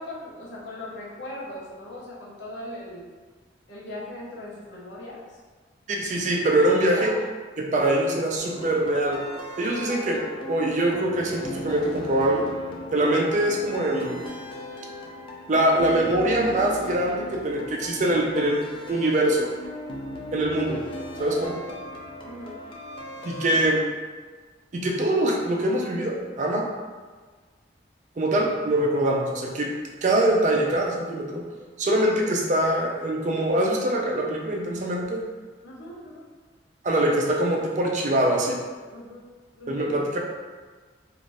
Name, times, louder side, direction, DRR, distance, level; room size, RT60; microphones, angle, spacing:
voice 1, 0.0-3.1 3.7-5.4 6.9-7.2 22.2-22.6 23.5-23.7 35.6-36.3 38.9-39.2 39.5-40.0, left 1 dB, 85° left, -5 dB, 0.8 m, -39 dB
voice 2, 5.9-7.1 7.6-9.2 9.6-12.5 12.9-14.3 15.5-18.6 18.9-19.5 20.3-20.8 21.2-21.6 23.2-23.8 24.7-26.7 28.2-29.7 30.0-31.4 31.8-35.2 36.8-38.6 39.7-40.2, right 1 dB, 40° right, -1 dB, 0.4 m, -23 dB
sound 1, 8.4-23.7, left 1 dB, 30° left, 0.3 m, -37 dB
2.6 x 2.4 x 3.2 m, 1.4 s
head